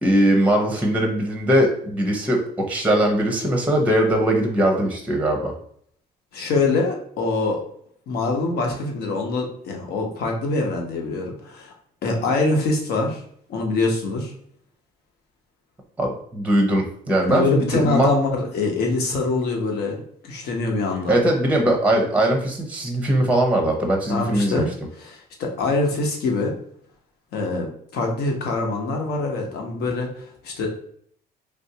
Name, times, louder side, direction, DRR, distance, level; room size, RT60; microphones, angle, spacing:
voice 1, 0.0-2.4 2.7-5.5 16.0-18.1 21.1-24.7, right 1 dB, 10° right, 2 dB, 0.6 m, -20 dB
voice 2, 6.3-7.6 8.1-11.7 12.0-13.2 13.5-14.3 17.3-21.2 24.1-24.7 25.0-26.5 27.3-30.7, left 3 dB, 70° left, 1 dB, 0.9 m, -24 dB
3.3 x 2.6 x 2.7 m, 0.63 s
cardioid pair, 110°, 17 cm